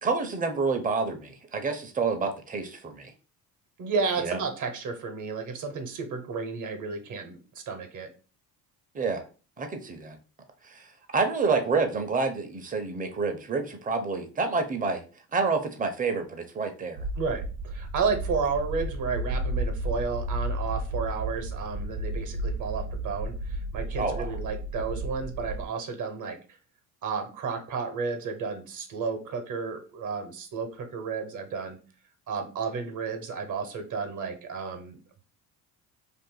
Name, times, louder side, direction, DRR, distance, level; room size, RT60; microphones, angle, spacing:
voice 1, 0.0-3.1 4.2-4.4 8.9-9.2 9.6-10.2 10.6-15.0 15.3-17.0 24.0-24.4, right 4 dB, 20° right, 6 dB, 0.6 m, -28 dB
voice 2, 3.8-8.1 17.2-26.4 27.0-31.8 32.3-35.0, right 5 dB, 50° right, 7 dB, 0.9 m, -32 dB
sound 1, 17.0-25.7, right 1 dB, 80° right, 0.8 m, -33 dB
2.6 x 2.5 x 3.8 m, 0.36 s
cardioid pair, 95°, 40 cm